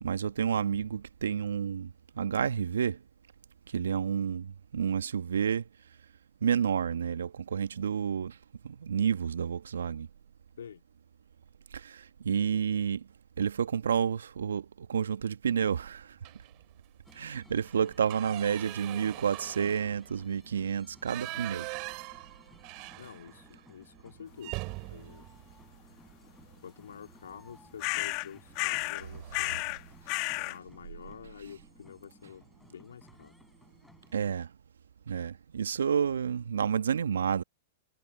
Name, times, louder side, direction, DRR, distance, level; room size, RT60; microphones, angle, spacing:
voice 1, 0.0-3.0 3.7-5.6 6.4-8.4 8.6-10.1 11.7-13.1 13.4-16.2 17.1-21.7 34.1-34.5 35.1-37.4, right 7 dB, 75° right, 1.3 m, -30 dB
sound 1, 16.2-16.6 17.0-17.2 17.5-23.6 23.9-24.0 24.4-26.5 27.9-28.1 28.5-28.7 29.0-29.6, right 29 dB, 45° right, 2.6 m, -43 dB
sound 2, 17.0-34.3, left 2 dB, 5° left, 7.9 m, -59 dB
voice 2, 23.0-25.3 26.6-29.7 30.4-33.3, left 8 dB, 75° left, 1.9 m, -48 dB
sound 3, 27.8-28.3 28.5-29.0 29.3-29.8 30.1-30.6, left 27 dB, 45° left, 1.1 m, -32 dB
hypercardioid pair, 105°, 0 cm